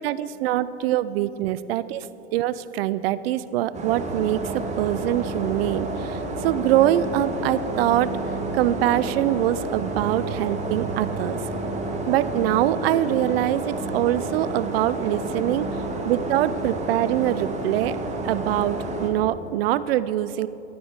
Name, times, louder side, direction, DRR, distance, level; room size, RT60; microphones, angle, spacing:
voice 1, 0.0-2.1 2.3-8.1 8.5-11.4 12.1-15.7 16.1-18.0 18.2-20.5, right 13 dB, 65° right, 16 dB, 0.4 m, -24 dB
sound 1, 3.7-19.1, right 2 dB, 20° right, 1.2 m, -30 dB
11.0 x 9.3 x 3.6 m, 3.0 s
hypercardioid pair, 100°, 33 cm